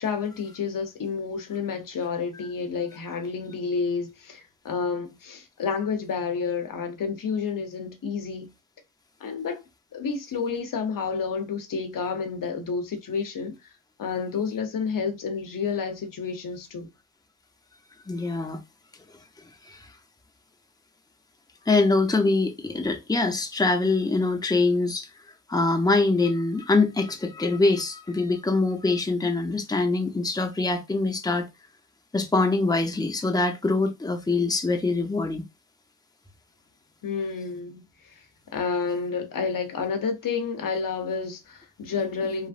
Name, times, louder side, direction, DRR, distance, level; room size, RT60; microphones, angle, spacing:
voice 1, 0.0-8.5 9.2-9.6 9.9-13.5 14.0-16.9 37.0-37.8 38.1-38.2 38.5-42.5, left 5 dB, 85° left, 0.7 m, -30 dB
voice 2, 18.1-18.6 19.7-19.8 21.7-25.1 25.5-31.5 32.1-35.4, left 3 dB, 10° left, 0.6 m, -24 dB
3.0 x 2.5 x 2.4 m
cardioid pair, 65°, 32 cm